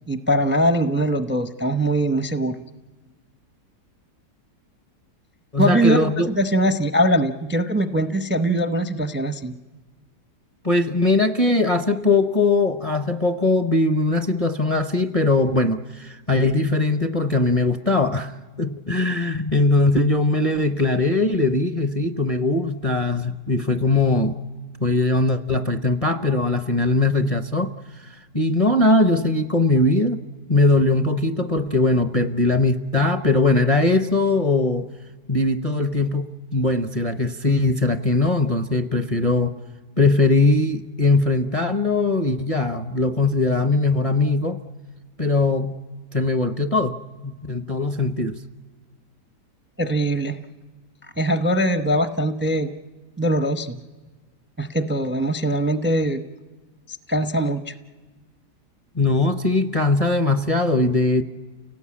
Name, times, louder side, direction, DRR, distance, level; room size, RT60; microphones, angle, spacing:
voice 1, 0.0-2.6 5.6-9.5 49.8-50.4 51.2-52.7 53.2-53.8 54.6-56.2 57.1-57.7, right 1 dB, 15° right, 8 dB, 0.3 m, -22 dB
voice 2, 5.5-6.3 10.6-24.4 24.8-27.7 28.3-30.2 30.5-34.9 35.3-39.6 40.0-44.6 45.2-45.8 46.1-47.0 47.2-48.4 58.9-61.2, left 2 dB, 35° left, 7 dB, 0.6 m, -20 dB
29.5 x 18.0 x 8.6 m, 1.4 s
omnidirectional pair, 1.8 m